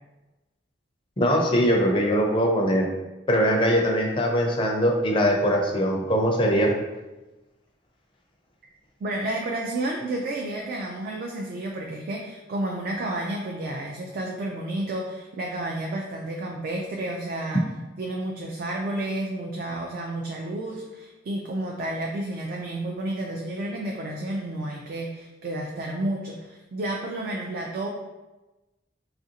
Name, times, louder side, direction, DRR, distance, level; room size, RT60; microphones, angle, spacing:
voice 1, 1.2-2.9 3.3-6.7, equal, 30° left, 1 dB, 0.4 m, -21 dB
voice 2, 9.0-17.6 18.0-27.9, right 1 dB, 50° right, 0 dB, 0.3 m, -31 dB
3.1 x 2.5 x 2.7 m, 1.1 s
head